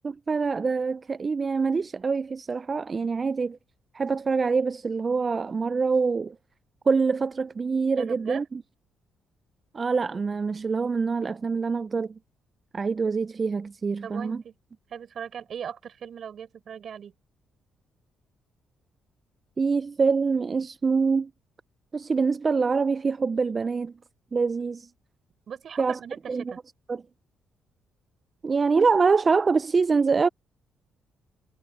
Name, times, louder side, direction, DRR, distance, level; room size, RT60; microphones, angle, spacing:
voice 1, 0.0-3.6 3.9-6.4 6.9-8.6 9.7-12.2 12.7-14.4 19.6-21.3 21.9-23.9 24.3-24.9 25.8-26.0 26.3-26.5 26.9-27.0 28.4-30.3, right 4 dB, 35° right, 0.3 m, -25 dB
voice 2, 8.0-8.4 14.0-14.5 14.9-17.1 25.5-26.2 26.5-26.6, right 8 dB, 55° right, 6.1 m, -38 dB
cardioid pair, 90°, 0 cm